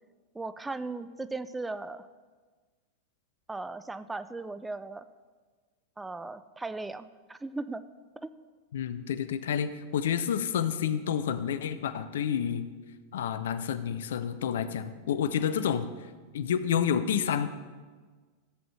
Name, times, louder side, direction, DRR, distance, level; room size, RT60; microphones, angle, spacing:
voice 1, 0.3-2.1 3.5-5.1 6.0-7.8 8.2-8.3, right 3 dB, 10° right, 13 dB, 0.3 m, -37 dB
voice 2, 8.7-12.6 13.1-15.9 16.3-17.5, left 8 dB, 60° left, 12 dB, 0.5 m, -29 dB
14.5 x 7.9 x 3.2 m, 1.4 s
figure-of-eight pair, 90°, 0 cm